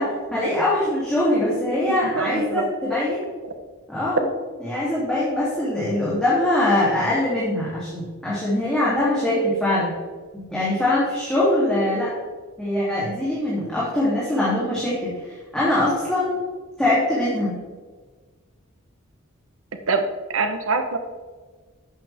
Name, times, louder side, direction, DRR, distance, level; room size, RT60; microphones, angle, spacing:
voice 1, 0.0-3.2 3.9-4.2 4.6-9.9 10.5-12.1 12.6-16.3 16.8-17.5, left 1 dB, 5° left, -10 dB, 2.9 m, -22 dB
voice 2, 2.1-2.6 19.9-20.0 20.3-21.0, right 4 dB, 75° right, 6 dB, 1.0 m, -23 dB
12.0 x 8.7 x 3.6 m, 1.4 s
head